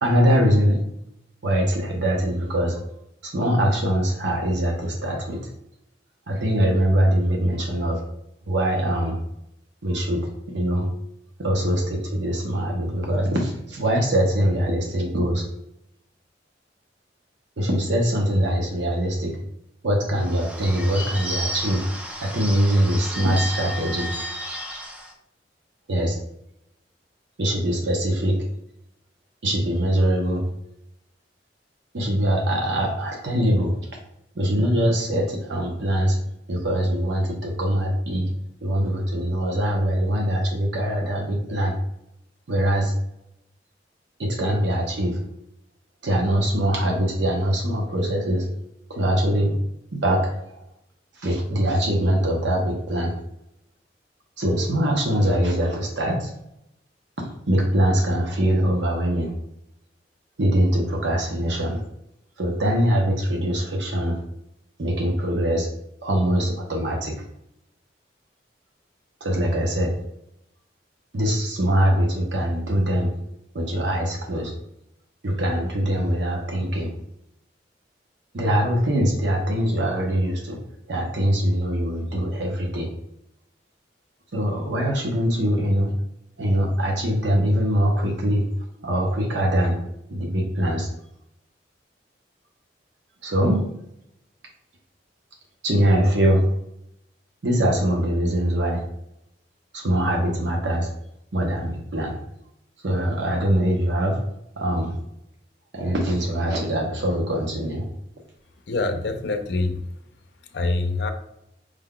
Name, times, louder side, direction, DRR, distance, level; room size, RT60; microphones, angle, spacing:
voice 1, 0.0-0.8 1.4-2.8 3.2-5.4 6.3-8.0 8.5-9.2 9.8-10.9 11.4-15.4 17.6-19.4 19.8-21.8 22.2-24.1 25.9-26.2 27.4-28.4 29.4-30.4 31.9-33.7 34.3-36.2 36.5-38.3 38.6-41.7 42.5-42.9 44.2-45.2 46.0-48.5 48.9-49.5 49.9-50.6 51.2-53.1 54.4-56.3 57.2-59.3 60.4-61.8 62.4-64.2 64.8-65.7 66.0-67.1 69.2-69.9 71.1-73.1 73.5-74.5 75.2-76.9 78.3-80.6 80.9-82.9 84.3-85.9 86.4-88.4 88.8-89.8 90.1-90.9 93.2-93.6 95.6-96.4 97.4-98.8 99.7-100.9 101.3-102.2 102.8-104.2 104.6-104.9 105.7-107.9, equal, 80° right, 0 dB, 0.8 m, -22 dB
Bird / Bell, 20.2-25.1, equal, 10° right, 0.5 m, -33 dB
voice 2, 108.7-109.8 110.5-111.1, left 2 dB, 65° left, 6 dB, 0.5 m, -25 dB
5.0 x 2.3 x 3.7 m, 0.81 s
head